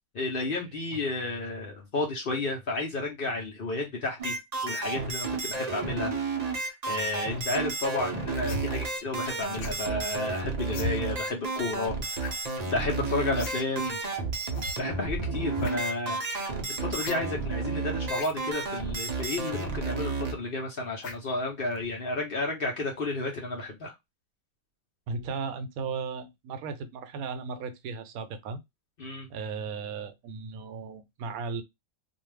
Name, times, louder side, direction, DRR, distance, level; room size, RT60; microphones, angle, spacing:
voice 1, 0.1-4.4 4.6-6.1 6.4-14.0 14.8-16.2 16.8-23.9 29.0-29.3, left 2 dB, 50° left, 0.8 m, -32 dB
sound 1, 4.2-20.3, right 3 dB, 50° right, 0.5 m, -32 dB
sound 2, 8.4-8.7 9.6-9.8 10.7-10.9 12.2-12.4 12.6-12.7 13.3-13.6 13.8-13.9 14.5-14.7 15.5-15.7 17.0-17.2 18.1-18.3 19.2-19.3 21.0-21.3 21.8-21.9, left 3 dB, 75° left, 1.0 m, -36 dB
voice 2, 25.1-28.6 29.3-31.6, right 5 dB, 80° right, 1.1 m, -36 dB
2.6 x 2.3 x 3.2 m
omnidirectional pair, 1.5 m